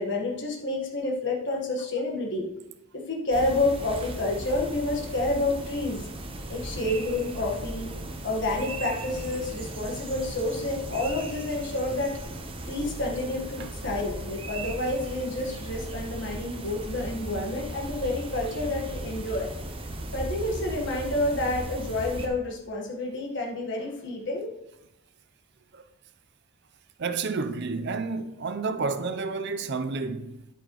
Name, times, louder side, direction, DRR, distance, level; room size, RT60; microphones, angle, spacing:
voice 1, 0.0-2.5 2.9-6.1 6.5-7.9 8.2-12.2 12.6-19.5 20.1-24.5, left 2 dB, 55° left, 1.4 m, -29 dB
sound 1, 3.3-22.3, right 1 dB, 25° right, 0.9 m, -37 dB
voice 2, 27.0-30.4, right 4 dB, 55° right, 0.6 m, -30 dB
10.0 x 8.8 x 3.1 m
head